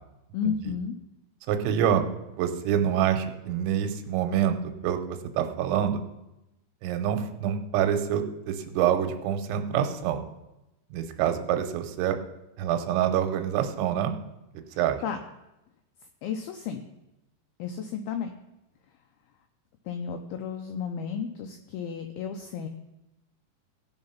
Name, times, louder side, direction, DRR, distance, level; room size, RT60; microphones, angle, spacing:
voice 1, 0.3-1.0 14.7-15.2 16.2-16.8 17.6-18.3 19.9-22.7, left 7 dB, 80° left, 5 dB, 2.2 m, -33 dB
voice 2, 1.5-2.0 2.4-6.0 6.8-10.2 10.9-12.2 12.6-14.1 14.5-15.0, right 9 dB, 90° right, 7 dB, 3.2 m, -26 dB
17.0 x 5.7 x 5.7 m, 0.94 s
omnidirectional pair, 5.1 m